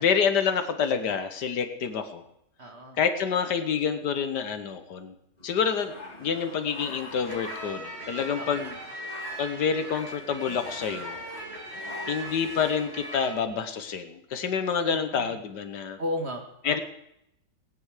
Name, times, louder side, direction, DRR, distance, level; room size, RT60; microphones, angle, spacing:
voice 1, 0.0-2.2 3.0-5.2 5.4-5.9 6.2-8.7 9.4-11.2 12.1-16.0 16.6-16.8, left 6 dB, 70° left, 9 dB, 1.5 m, -27 dB
voice 2, 2.6-3.0 8.4-8.7 14.9-15.4 16.0-16.8, left 1 dB, 35° right, 4 dB, 1.8 m, -35 dB
sound 1, 5.4-13.4, left 2 dB, 20° left, 2.1 m, -45 dB
sound 2, 7.2-13.3, right 1 dB, 55° right, 4.0 m, -39 dB
18.5 x 9.5 x 4.9 m, 0.78 s
omnidirectional pair, 2.0 m